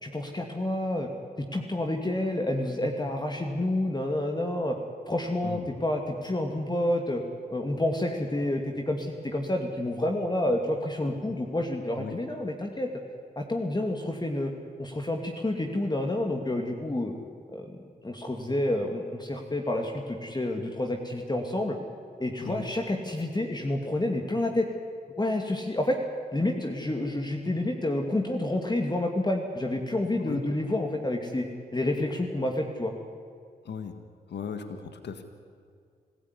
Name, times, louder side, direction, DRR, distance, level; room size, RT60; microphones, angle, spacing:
voice 1, 0.0-1.1 1.5-4.8 5.1-7.2 7.5-12.9 13.4-14.5 14.8-17.1 17.5-17.8 18.0-21.8 22.2-24.7 25.2-26.0 26.3-31.4 31.7-32.9, left 1 dB, 25° left, 2 dB, 2.6 m, -29 dB
voice 2, 33.6-34.0 34.3-35.2, left 6 dB, 75° left, 8 dB, 1.8 m, -37 dB
26.5 x 15.5 x 9.8 m, 2.2 s
supercardioid pair, 45°, 18 cm